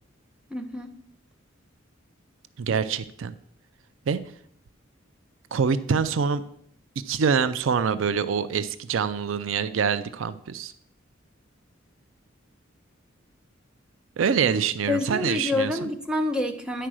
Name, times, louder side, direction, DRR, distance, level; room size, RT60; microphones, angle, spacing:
voice 1, 0.5-0.9 14.9-16.9, left 2 dB, 5° right, 4 dB, 0.8 m, -27 dB
voice 2, 2.6-3.3 4.1-4.2 5.5-6.4 7.1-10.7 14.2-15.9, right 6 dB, 80° right, 13 dB, 0.4 m, -25 dB
10.0 x 4.5 x 6.2 m, 0.66 s
head